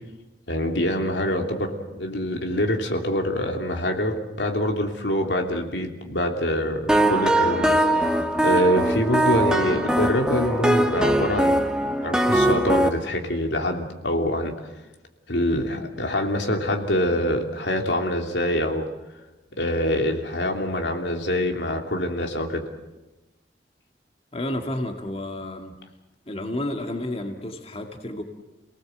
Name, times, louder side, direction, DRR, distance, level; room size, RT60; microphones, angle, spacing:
voice 1, 0.5-11.7 12.0-14.5 15.3-18.9 19.6-22.6, left 1 dB, 80° left, 3 dB, 3.1 m, -25 dB
sound 1, 6.9-12.9, right 1 dB, 5° right, 1.1 m, -21 dB
voice 2, 24.3-25.8 26.3-28.2, left 1 dB, 35° left, 3 dB, 2.1 m, -31 dB
29.5 x 19.0 x 8.0 m, 1.1 s
head